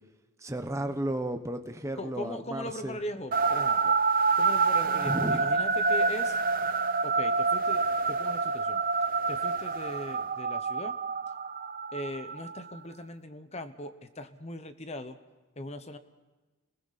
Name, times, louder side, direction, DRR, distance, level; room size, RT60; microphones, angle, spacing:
voice 1, 0.4-3.0 5.0-5.4, right 1 dB, 15° right, 6 dB, 1.0 m, -33 dB
voice 2, 2.0-4.0 4.4-6.4 7.0-8.8 9.3-10.9 11.9-15.2 15.6-16.0, left 1 dB, 30° left, 10 dB, 1.0 m, -39 dB
sound 1, 3.3-12.8, right 4 dB, 40° right, 0.7 m, -27 dB
sound 2, 4.8-8.0, equal, 60° right, 3.6 m, -49 dB
29.5 x 21.0 x 4.2 m, 1.2 s
head